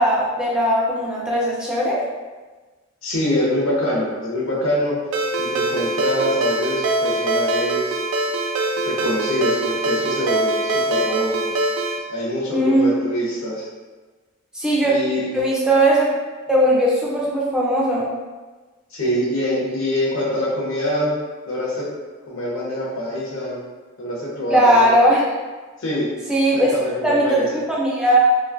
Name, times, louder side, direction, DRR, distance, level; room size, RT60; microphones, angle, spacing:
voice 1, 0.0-2.0 12.5-13.0 14.5-14.9 15.3-16.1 16.5-18.1 24.5-25.3 26.3-26.7 27.0-28.2, right 1 dB, 5° right, -5 dB, 0.4 m, -18 dB
voice 2, 3.0-4.9 5.4-8.0 8.8-11.4 12.1-13.6 14.8-15.3 18.9-21.2 21.4-21.9 22.3-23.6 24.0-24.8 25.8-26.1 26.5-27.5, left 1 dB, 80° left, -5 dB, 1.0 m, -24 dB
Ringtone, 5.1-12.0, right 1 dB, 85° right, 0.4 m, -23 dB
3.1 x 2.5 x 2.4 m, 1.3 s
head